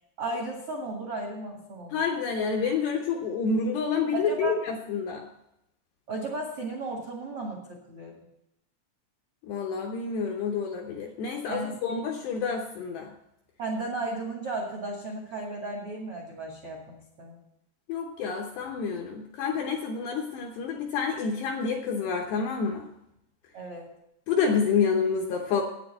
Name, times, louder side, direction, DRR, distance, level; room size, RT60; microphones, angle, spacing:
voice 1, 0.2-2.0 4.1-4.6 6.1-8.1 11.5-12.0 13.6-17.4 23.5-23.9, right 2 dB, 70° right, 0 dB, 1.3 m, -35 dB
voice 2, 1.9-5.3 9.4-13.1 17.9-22.9 24.3-25.6, left 5 dB, 80° left, 1 dB, 2.5 m, -28 dB
9.3 x 9.2 x 7.4 m, 0.84 s
omnidirectional pair, 6.0 m